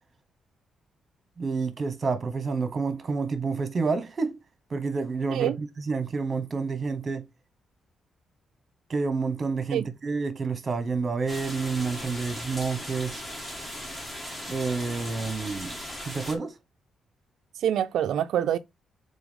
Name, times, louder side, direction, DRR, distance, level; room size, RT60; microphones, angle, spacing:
voice 1, 1.4-4.4 4.7-7.2 8.9-13.2 14.5-16.6, right 4 dB, 30° right, 1.2 m, -29 dB
sound 1, 11.3-16.3, equal, 15° left, 1.8 m, -38 dB
voice 2, 17.6-18.6, right 10 dB, 80° right, 0.3 m, -25 dB
4.7 x 4.0 x 5.2 m
cardioid pair, 125°, 0 cm